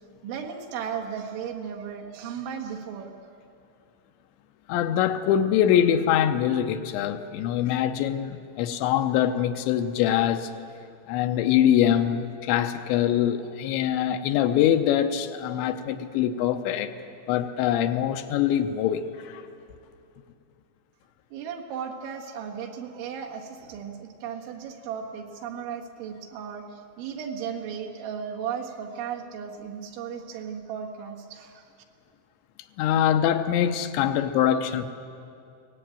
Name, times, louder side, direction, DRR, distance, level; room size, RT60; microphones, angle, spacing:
voice 1, 0.2-3.1 21.3-31.7, right 7 dB, 85° right, 1 dB, 4.0 m, -35 dB
voice 2, 4.7-10.5 11.1-16.9 17.3-19.4 32.8-34.9, left 10 dB, 85° left, 8 dB, 3.1 m, -23 dB
22.0 x 18.5 x 9.0 m, 2.5 s
omnidirectional pair, 5.3 m